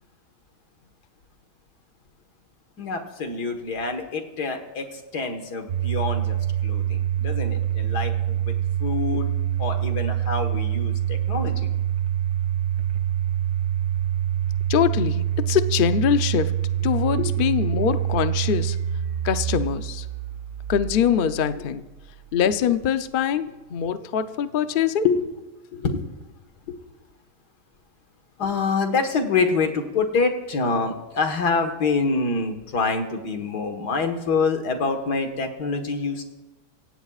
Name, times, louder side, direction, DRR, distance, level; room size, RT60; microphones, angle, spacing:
voice 1, 2.8-8.5 8.8-9.3 9.6-11.7 17.2-17.3 25.0-25.2 25.7-26.0 28.4-36.2, left 4 dB, 65° left, 5 dB, 2.1 m, -26 dB
Domestic sounds home sounds, 5.7-22.6, right 11 dB, 70° right, 0.7 m, -26 dB
voice 2, 14.7-16.5 16.8-18.8 19.2-20.0 20.7-21.8 22.3-25.0, left 8 dB, 85° left, 10 dB, 0.4 m, -23 dB
25.5 x 16.5 x 2.4 m, 1.1 s
omnidirectional pair, 1.9 m